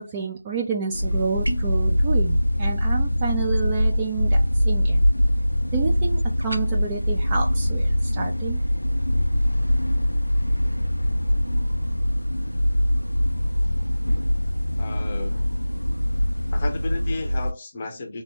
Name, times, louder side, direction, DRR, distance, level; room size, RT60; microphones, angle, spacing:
voice 1, 0.0-5.1 5.7-8.6, right 5 dB, 10° right, 0.3 m, -29 dB
sound 1, 0.9-17.5, equal, 85° left, 0.4 m, -23 dB
sound 2, 1.4-1.8 6.4-6.7, right 1 dB, 55° right, 0.7 m, -33 dB
voice 2, 14.8-15.4 16.5-18.2, left 3 dB, 20° left, 0.6 m, -33 dB
3.3 x 2.7 x 2.8 m
figure-of-eight pair, 165°, 0 cm